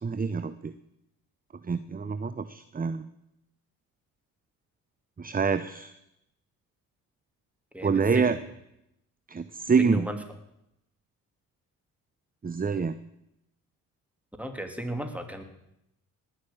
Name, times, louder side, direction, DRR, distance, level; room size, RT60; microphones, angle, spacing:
voice 1, 0.0-0.7 1.6-3.0 5.2-5.9 7.8-8.4 9.3-10.1 12.4-13.0, right 5 dB, 25° right, 13 dB, 0.8 m, -26 dB
voice 2, 7.7-8.4 9.8-10.2 14.4-15.4, equal, 5° right, 6 dB, 2.8 m, -35 dB
19.5 x 6.6 x 8.9 m, 0.84 s
supercardioid pair, 55°, 38 cm